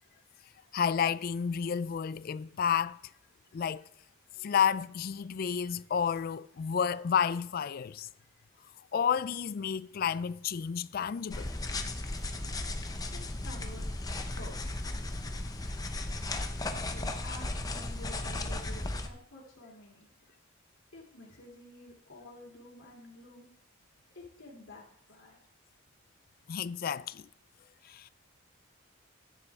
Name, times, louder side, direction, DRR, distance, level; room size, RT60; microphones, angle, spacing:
voice 1, 0.7-3.0 3.5-3.8 4.4-8.1 8.9-11.5 26.5-27.3 27.9-28.1, left 7 dB, 45° left, 0.3 m, -31 dB
sound 1, 11.3-19.1, left 2 dB, 15° left, 0.6 m, -35 dB
voice 2, 13.1-13.9 14.2-14.5 16.7-20.1 20.9-23.5 24.1-25.4, left 1 dB, 70° left, 2.8 m, -50 dB
14.5 x 10.0 x 3.6 m
head